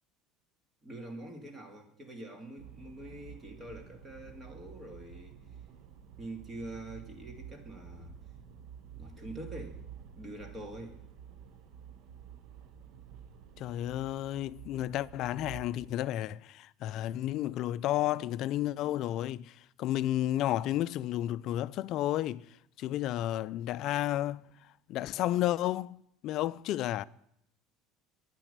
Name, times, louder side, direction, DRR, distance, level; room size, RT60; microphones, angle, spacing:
voice 1, 0.8-5.6 6.2-8.1 8.9-9.8 10.2-11.0, right 1 dB, 20° right, 2.0 m, -45 dB
sound 1, 2.6-15.9, right 8 dB, 60° right, 0.9 m, -50 dB
voice 2, 13.6-22.4 22.8-24.5 24.9-26.0 26.2-27.0, left 13 dB, 50° left, 0.4 m, -32 dB
10.0 x 9.1 x 6.7 m
cardioid pair, 150°, 0 cm